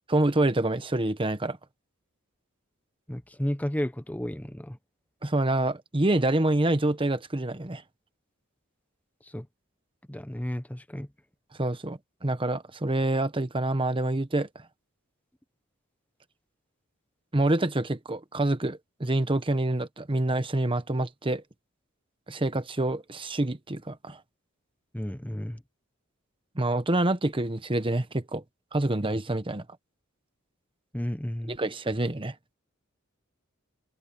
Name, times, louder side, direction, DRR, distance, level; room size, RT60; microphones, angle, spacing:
voice 1, 0.1-1.6 5.2-7.8 11.6-14.5 17.3-21.4 22.3-24.2 26.5-28.4 28.7-29.6 31.5-32.3, right 2 dB, 25° right, 1.1 m, -27 dB
voice 2, 3.1-4.8 9.2-9.5 10.1-11.1 24.9-25.6 30.9-31.6, equal, 10° left, 0.8 m, -32 dB
head